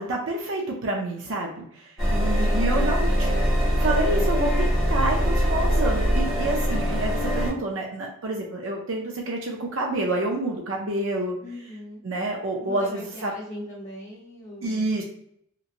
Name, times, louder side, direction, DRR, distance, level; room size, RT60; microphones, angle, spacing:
voice 1, 0.0-3.4 3.8-11.4 12.0-13.3 14.6-15.0, right 2 dB, 60° right, 0 dB, 0.5 m, -28 dB
voice 2, 2.0-3.1 11.4-12.0 12.6-14.9, left 1 dB, 30° left, -8 dB, 0.7 m, -39 dB
sound 1, 2.0-7.5, equal, ahead, 1.0 m, -22 dB
2.9 x 2.7 x 2.4 m, 0.70 s
head